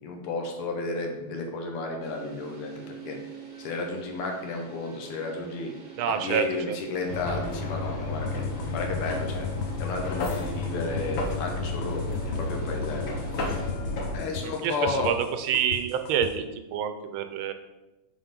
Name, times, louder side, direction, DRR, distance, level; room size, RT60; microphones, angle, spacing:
voice 1, 0.0-3.2 3.6-5.7 6.1-8.4 8.7-9.5 9.8-13.3 14.1-15.2, left 3 dB, 90° left, 2 dB, 1.9 m, -32 dB
sound 1, 2.0-13.7, right 6 dB, 45° right, 0.6 m, -45 dB
voice 2, 6.0-6.8 14.3-17.5, right 8 dB, 75° right, 8 dB, 1.4 m, -28 dB
sound 2, 7.1-14.2, left 3 dB, 50° left, 1.0 m, -31 dB
sound 3, 8.3-16.3, left 8 dB, 70° left, 1.4 m, -37 dB
7.2 x 3.8 x 5.1 m, 1.0 s
omnidirectional pair, 2.4 m